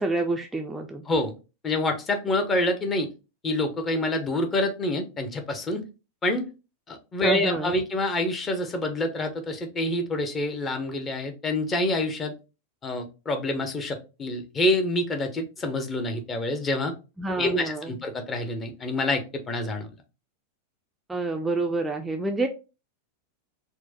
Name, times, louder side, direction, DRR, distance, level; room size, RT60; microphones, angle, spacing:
voice 1, 0.0-1.0 7.2-7.8 17.2-17.9 21.1-22.5, right 2 dB, 10° right, 3 dB, 0.3 m, -28 dB
voice 2, 1.6-3.1 3.4-5.8 6.2-6.5 6.9-12.3 12.8-16.9 17.4-19.9, left 1 dB, 20° left, 6 dB, 0.7 m, -27 dB
4.4 x 2.1 x 2.7 m, 0.31 s
figure-of-eight pair, 90°, 0 cm